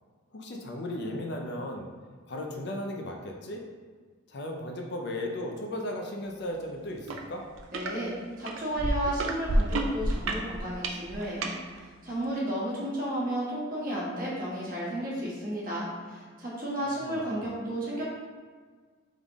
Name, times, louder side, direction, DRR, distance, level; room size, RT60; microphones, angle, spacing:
voice 1, 0.3-1.9 2.3-3.6 4.3-7.4 17.0-17.5, left 1 dB, 50° left, 1 dB, 0.5 m, -36 dB
sound 1, 7.1-7.2 7.5-7.9 8.5-11.5 12.2-12.3, right 1 dB, 70° right, 0.5 m, -28 dB
voice 2, 7.7-18.0, right 1 dB, 40° right, -7 dB, 1.3 m, -33 dB
3.6 x 3.6 x 3.5 m, 1.5 s
head